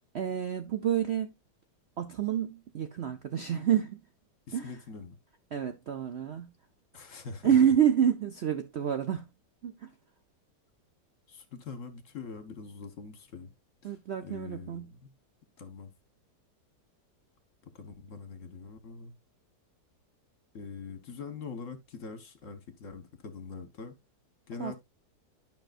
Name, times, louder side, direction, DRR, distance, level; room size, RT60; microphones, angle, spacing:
voice 1, 0.1-1.3 2.0-4.0 4.5-4.8 5.5-6.5 7.4-9.3 9.6-9.9 13.8-14.9 24.6-24.7, right 9 dB, 60° right, 0.7 m, -28 dB
voice 2, 4.5-5.2 6.9-7.7 11.3-13.5 13.8-13.9 14.2-15.1 15.6-15.9 17.6-19.2 20.5-23.9 24.5-24.7, left 5 dB, 50° left, 1.4 m, -43 dB
11.5 x 5.6 x 2.4 m
omnidirectional pair, 1.8 m